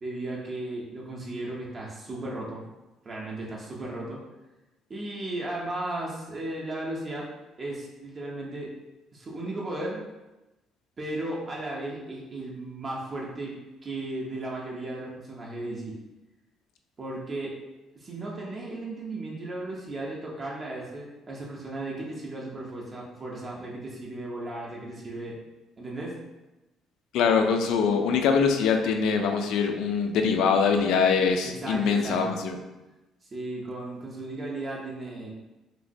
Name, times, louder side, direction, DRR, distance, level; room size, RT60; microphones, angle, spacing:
voice 1, 0.0-2.6 3.0-4.2 4.9-7.3 7.6-8.7 9.1-10.0 11.0-13.5 13.8-15.9 17.0-17.5 18.0-25.4 25.8-26.2 31.4-32.3 33.2-35.3, right 2 dB, 25° right, -4 dB, 0.5 m, -35 dB
voice 2, 27.1-32.6, left 6 dB, 70° left, 5 dB, 0.3 m, -23 dB
3.1 x 2.8 x 2.6 m, 1.0 s
cardioid pair, 165°, 0 cm